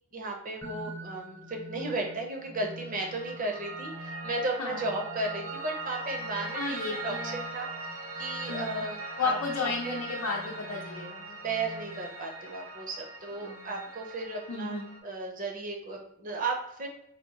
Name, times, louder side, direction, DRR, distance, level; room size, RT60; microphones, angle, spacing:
voice 1, 0.1-7.9 8.2-10.0 11.3-16.9, right 2 dB, 35° right, 1 dB, 0.6 m, -35 dB
sound 1, 0.6-12.3, right 1 dB, 10° left, 0.5 m, -47 dB
Piano, 2.7-15.0, right 2 dB, 75° right, 0.8 m, -40 dB
voice 2, 6.5-7.4 8.5-8.8 9.2-11.2 13.4-13.7 14.5-15.0, left 4 dB, 85° left, -2 dB, 0.6 m, -33 dB
4.1 x 2.6 x 2.8 m, 0.80 s
head